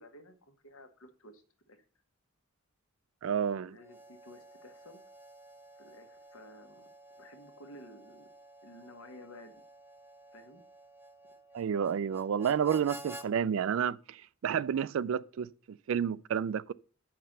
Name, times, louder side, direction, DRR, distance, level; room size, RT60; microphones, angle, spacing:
voice 1, 0.0-1.8 3.6-5.0 5.8-6.9 7.2-8.3 8.6-9.6 10.3-10.6, left 1 dB, 75° left, 1.4 m, -53 dB
voice 2, 3.2-3.8 11.5-16.7, right 8 dB, 65° right, 0.3 m, -30 dB
Harmonica, 3.8-13.3, right 1 dB, 10° right, 0.6 m, -52 dB
7.4 x 5.9 x 6.6 m
head